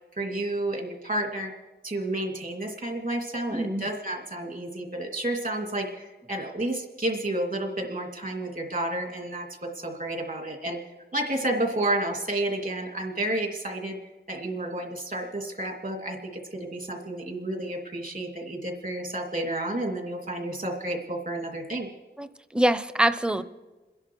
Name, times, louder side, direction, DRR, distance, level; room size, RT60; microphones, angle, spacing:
voice 1, 0.1-1.5 1.8-10.8 11.1-14.0 14.3-21.9, right 1 dB, 45° right, 2 dB, 2.7 m, -31 dB
voice 2, 3.5-3.9 22.2-23.4, right 1 dB, 5° right, 13 dB, 0.7 m, -25 dB
28.0 x 10.5 x 4.7 m, 1.2 s
wide cardioid pair, 70°, 19 cm